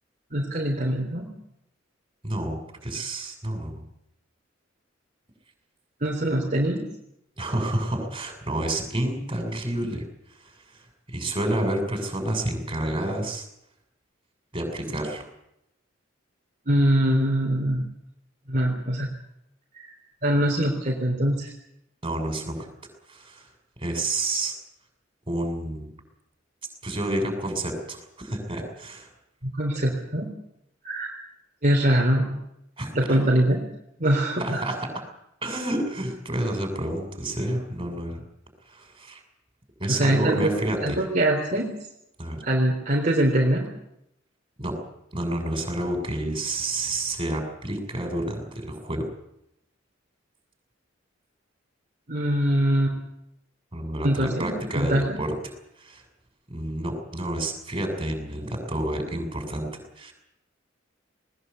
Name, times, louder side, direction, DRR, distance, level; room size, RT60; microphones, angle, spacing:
voice 1, 0.3-1.3 6.0-6.8 16.7-17.9 18.5-19.1 19.7-19.9 20.2-21.5 29.4-30.3 30.8-31.1 31.6-32.4 32.9-33.6 34.0-34.6 39.9-40.5 40.8-41.7 42.4-43.6 52.1-53.0 54.0-55.0, right 1 dB, 40° right, -1 dB, 3.8 m, -23 dB
voice 2, 2.2-3.8 7.4-10.0 10.4-10.9 11.1-13.5 14.5-15.3 22.0-22.7 23.1-23.5 23.8-24.6 25.3-25.9 26.8-29.1 32.8-33.2 34.4-34.8 35.4-38.2 38.7-39.2 39.8-41.0 42.2-42.4 44.6-44.7 45.1-49.1 53.7-55.3 55.8-56.0 56.5-60.1, right 1 dB, 25° right, 4 dB, 7.0 m, -29 dB
20.5 x 20.5 x 8.2 m, 0.80 s
head